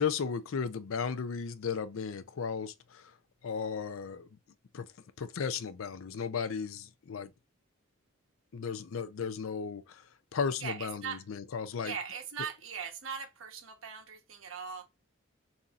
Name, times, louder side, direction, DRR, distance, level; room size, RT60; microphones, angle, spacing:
voice 1, 0.0-3.0 3.4-4.3 4.7-4.9 5.2-7.3 8.5-10.0 10.3-11.9, left 6 dB, 80° left, 0.5 m, -35 dB
voice 2, 10.6-11.2 11.8-14.9, right 7 dB, 80° right, 1.1 m, -40 dB
7.0 x 2.7 x 2.4 m
head